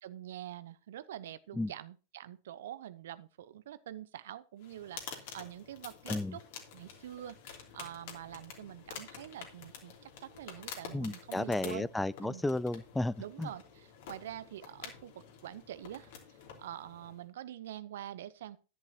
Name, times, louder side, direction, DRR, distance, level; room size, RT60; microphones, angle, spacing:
voice 1, 0.0-6.4 6.7-11.9 12.2-12.4 13.2-16.1 16.6-18.6, right 12 dB, 65° right, 0.8 m, -46 dB
sound 1, 4.6-17.3, left 7 dB, 60° left, 3.1 m, -49 dB
voice 2, 10.9-13.5, left 2 dB, 5° left, 0.4 m, -33 dB
11.0 x 10.5 x 2.9 m
hypercardioid pair, 100°, 0 cm